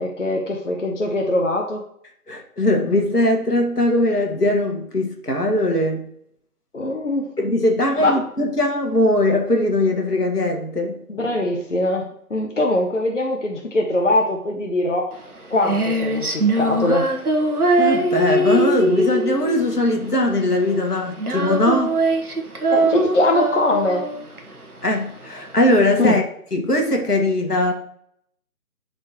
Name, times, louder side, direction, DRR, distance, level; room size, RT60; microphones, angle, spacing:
voice 1, 0.0-1.8 6.7-7.3 8.0-8.1 11.1-15.1 15.5-17.2 22.7-24.0 26.0-26.2, left 1 dB, 50° left, 0.9 m, -22 dB
voice 2, 2.3-6.0 7.4-11.0 17.8-22.0 24.8-26.2 26.5-27.7, left 1 dB, 80° left, 1.8 m, -20 dB
Female singing, 15.1-26.1, right 1 dB, 70° right, 1.3 m, -22 dB
11.0 x 4.4 x 3.0 m
figure-of-eight pair, 165°, 46 cm